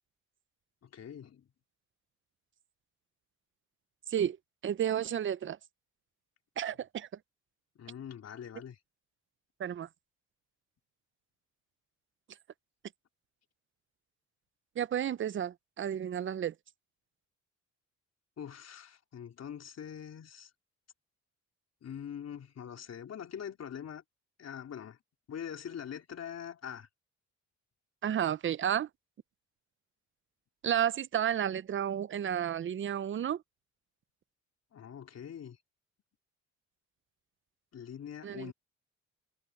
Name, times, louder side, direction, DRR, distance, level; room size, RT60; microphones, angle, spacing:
voice 1, 0.8-1.5 7.8-8.8 18.4-20.5 21.8-24.0 24.4-25.0 25.3-26.9 34.7-35.6 37.7-38.5, left 8 dB, 55° left, 4.0 m, -43 dB
voice 2, 4.6-5.6 6.6-7.1 9.6-9.9 14.8-16.5 28.0-28.9 30.6-33.4 38.2-38.5, right 9 dB, 40° right, 0.6 m, -32 dB
cardioid pair, 90°, 30 cm